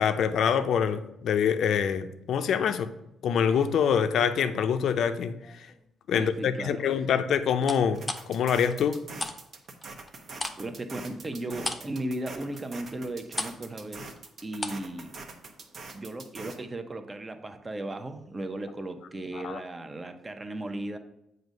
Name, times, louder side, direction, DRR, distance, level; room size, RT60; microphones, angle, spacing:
voice 1, 0.0-2.9 3.2-5.7 6.1-9.0 19.4-19.6, left 7 dB, 70° left, 0.5 m, -25 dB
sound 1, 3.2-5.0 5.4-5.9 7.6-9.4 9.6-14.9 15.2-15.3, left 2 dB, 20° left, 0.6 m, -38 dB
voice 2, 6.1-6.8 10.6-14.1 14.4-15.1 15.9-21.0, right 1 dB, 25° right, 0.6 m, -36 dB
sound 2, 7.9-16.6, right 3 dB, 50° right, 0.9 m, -44 dB
7.7 x 2.7 x 5.2 m
cardioid pair, 90°, 0 cm